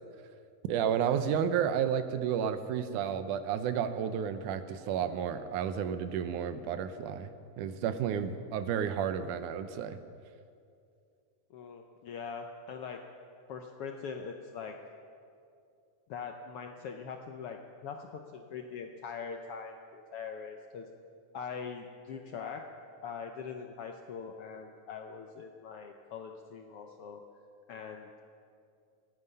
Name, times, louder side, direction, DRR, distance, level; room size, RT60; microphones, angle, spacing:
voice 1, 0.6-7.3 7.6-10.0, right 8 dB, 85° right, 10 dB, 2.3 m, -31 dB
voice 2, 11.5-13.0 13.5-14.8 16.1-20.9 21.3-22.6 23.0-27.2 27.7-28.2, left 6 dB, 75° left, 4 dB, 1.4 m, -42 dB
27.5 x 9.6 x 5.4 m, 2.4 s
omnidirectional pair, 3.5 m